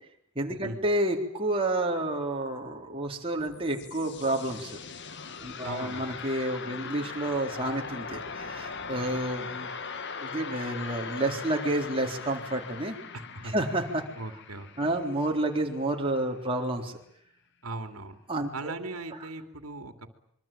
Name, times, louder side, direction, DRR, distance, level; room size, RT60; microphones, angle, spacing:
voice 1, 0.4-4.8 5.4-9.7 10.2-13.0 13.5-14.0 14.8-17.0 18.3-18.7, right 1 dB, 25° right, 1 dB, 4.0 m, -30 dB
sound 1, 3.2-16.1, left 5 dB, 55° left, 1.8 m, -40 dB
voice 2, 5.6-6.2 13.1-13.5 14.2-14.9 17.6-18.2 18.5-20.1, right 2 dB, 90° right, 7 dB, 2.8 m, -39 dB
26.0 x 23.5 x 8.9 m, 0.71 s
head